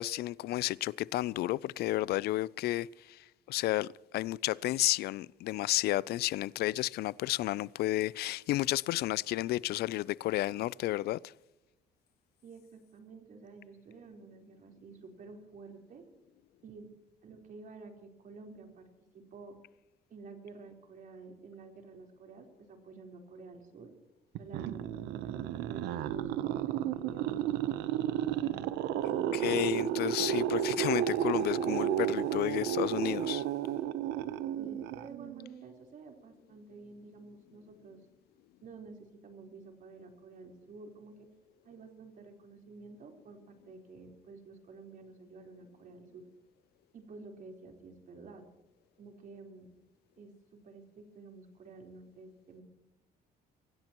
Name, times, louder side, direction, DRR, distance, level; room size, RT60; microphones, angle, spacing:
voice 1, 0.0-3.9 4.1-11.2 29.3-33.4, left 16 dB, 70° left, 0.4 m, -32 dB
voice 2, 12.4-16.0 16.6-16.9 17.2-18.9 19.1-19.6 20.1-23.9 24.4-27.4 28.4-29.1 34.6-38.0 38.6-41.3 41.6-46.2 46.9-48.4 49.0-49.7 50.2-52.6, right 4 dB, 55° right, 4.2 m, -51 dB
sound 1, 24.3-35.5, right 11 dB, 85° right, 0.9 m, -32 dB
24.5 x 16.0 x 3.0 m
cardioid pair, 110°, 17 cm